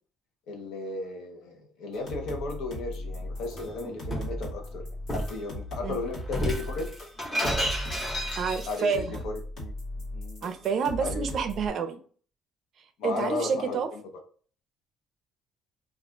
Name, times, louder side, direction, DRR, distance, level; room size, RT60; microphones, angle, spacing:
voice 1, 0.5-6.9 8.7-9.7 10.1-10.5 11.0-11.4 13.0-14.0, left 3 dB, 85° left, 3 dB, 0.7 m, -35 dB
sound 1, 1.9-11.7, equal, 60° left, 1.2 m, -38 dB
Shatter, 3.5-4.4 5.1-5.4 6.3-8.9, equal, 20° left, 0.8 m, -31 dB
voice 2, 8.4-9.2 10.4-12.0 13.0-13.9, right 5 dB, 45° right, 8 dB, 0.4 m, -29 dB
2.4 x 2.2 x 3.8 m, 0.44 s
cardioid pair, 175°, 0 cm